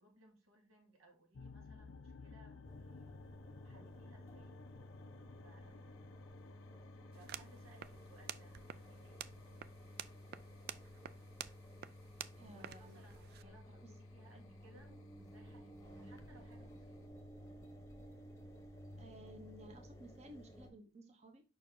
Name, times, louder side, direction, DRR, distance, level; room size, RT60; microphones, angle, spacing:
voice 1, 0.0-3.1 3.6-4.6 5.4-6.2 7.1-9.2 12.3-17.1, right 2 dB, 90° right, 0 dB, 2.3 m, -65 dB
sound 1, 1.3-17.1, left 4 dB, 80° left, 0.6 m, -59 dB
Engine, 2.6-20.7, equal, 15° left, 0.9 m, -54 dB
sound 2, 7.1-13.4, right 10 dB, 50° right, 0.3 m, -51 dB
voice 2, 12.4-13.0 13.4-13.6 14.3-14.5 19.0-21.4, right 1 dB, 35° right, 5 dB, 0.9 m, -56 dB
5.5 x 4.4 x 3.8 m, 0.31 s
head